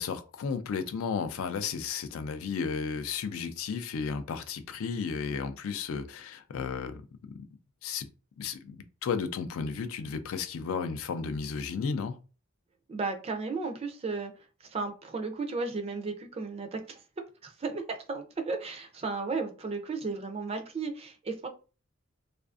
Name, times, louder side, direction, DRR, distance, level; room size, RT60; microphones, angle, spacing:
voice 1, 0.0-7.0 7.3-7.4 7.8-8.1 8.4-12.2, left 5 dB, 80° left, 0.4 m, -33 dB
voice 2, 12.9-14.3 14.6-17.0 17.4-21.5, right 4 dB, 30° right, 0.4 m, -34 dB
2.4 x 2.4 x 2.3 m
head